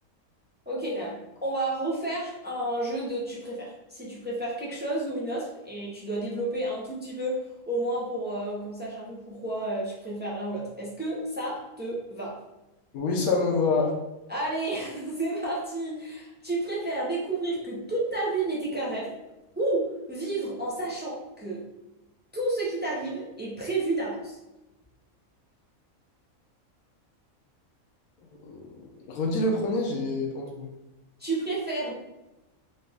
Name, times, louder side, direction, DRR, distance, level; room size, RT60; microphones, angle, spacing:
voice 1, 0.7-12.4 14.3-19.1 19.6-21.7 22.3-24.4 31.2-31.9, right 2 dB, 15° right, -5 dB, 0.4 m, -31 dB
voice 2, 12.9-13.9 28.4-30.7, left 3 dB, 90° left, -1 dB, 1.1 m, -27 dB
4.0 x 2.4 x 3.3 m, 0.98 s
omnidirectional pair, 1.5 m